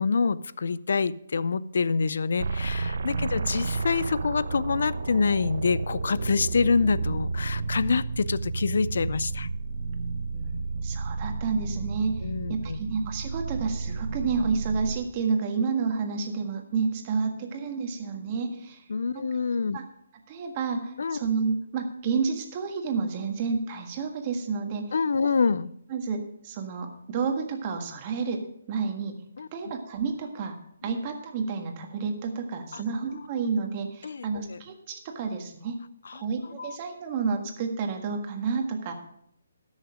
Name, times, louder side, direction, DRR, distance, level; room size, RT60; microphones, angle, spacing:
voice 1, 0.0-9.5 12.2-12.8 18.9-19.8 21.0-21.2 24.9-25.7 29.4-29.5 32.7-32.8 34.0-34.6 36.1-36.2 36.6-36.8, left 5 dB, 70° left, 18 dB, 0.4 m, -26 dB
sound 1, 2.4-15.0, right 4 dB, 70° right, 0.9 m, -31 dB
voice 2, 10.3-18.8 19.1-19.3 19.7-19.8 20.3-24.9 25.9-29.2 29.5-30.6 30.8-35.8 36.1-38.9, right 5 dB, 30° right, 4 dB, 1.6 m, -30 dB
13.5 x 6.4 x 4.9 m, 0.72 s
hypercardioid pair, 155°, 0 cm